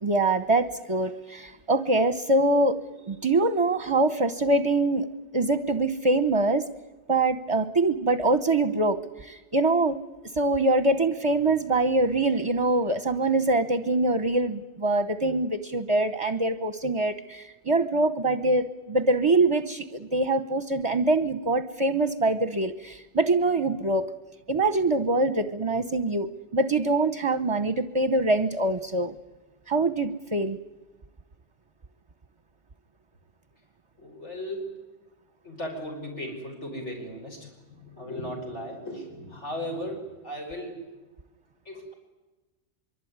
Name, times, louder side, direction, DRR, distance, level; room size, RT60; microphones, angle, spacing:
voice 1, 0.0-2.8 3.1-5.1 5.3-6.7 7.1-10.0 10.3-24.1 24.5-29.1 29.7-30.6, right 2 dB, 30° right, 12 dB, 0.9 m, -24 dB
voice 2, 34.0-34.8 35.4-40.9 41.7-41.9, equal, 80° left, 1 dB, 5.3 m, -36 dB
24.5 x 24.0 x 9.5 m, 1.2 s
omnidirectional pair, 1.2 m